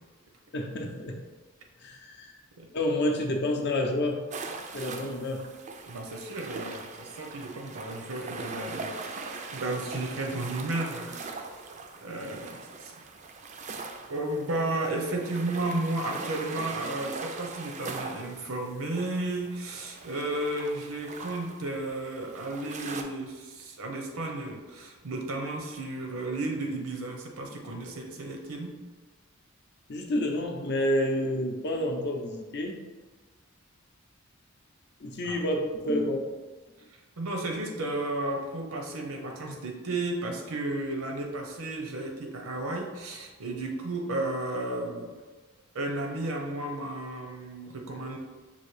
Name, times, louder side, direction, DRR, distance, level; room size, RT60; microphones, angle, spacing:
voice 1, 0.5-1.2 1.8-2.3 2.7-4.2 4.7-5.5 29.9-32.8 35.0-36.3, left 1 dB, 55° left, 3 dB, 0.6 m, -29 dB
sound 1, 4.3-23.0, right 4 dB, 35° right, 0.3 m, -41 dB
voice 2, 5.9-9.2 9.5-11.2 11.5-11.6 12.0-12.9 14.1-28.8 35.2-35.4 37.2-45.1 45.7-48.2, right 2 dB, 85° right, 2 dB, 0.8 m, -33 dB
5.5 x 2.6 x 3.2 m, 1.3 s
head